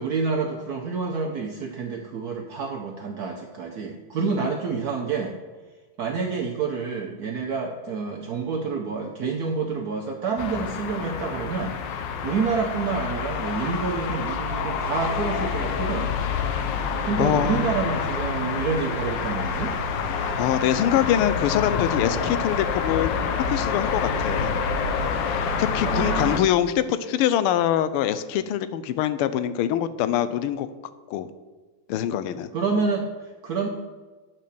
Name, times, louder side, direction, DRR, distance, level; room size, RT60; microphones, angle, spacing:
voice 1, 0.0-5.4 6.0-11.8 12.2-16.1 17.0-19.7 25.8-26.4 32.5-33.7, right 5 dB, 65° right, 1 dB, 0.9 m, -28 dB
sound 1, 10.4-26.4, left 5 dB, 65° left, 1.2 m, -27 dB
voice 2, 17.2-17.7 20.3-23.1 23.5-24.6 25.6-30.7 31.1-31.3 31.9-32.5, left 10 dB, 90° left, 13 dB, 1.5 m, -24 dB
9.2 x 4.3 x 6.9 m, 1.3 s
omnidirectional pair, 2.4 m